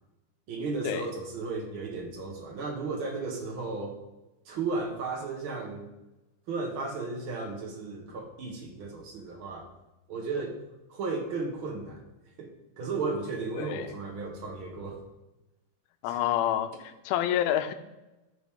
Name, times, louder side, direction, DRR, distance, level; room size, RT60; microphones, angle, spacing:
voice 1, 0.5-4.0 4.4-5.8 6.5-9.7 10.1-10.6 10.9-12.0 12.4-15.0 16.1-16.2, right 3 dB, 80° right, 0 dB, 1.1 m, -34 dB
voice 2, 13.6-13.9 16.0-16.7 17.1-17.7, left 11 dB, 90° left, 10 dB, 2.6 m, -27 dB
14.0 x 6.0 x 3.6 m, 1.0 s
omnidirectional pair, 4.4 m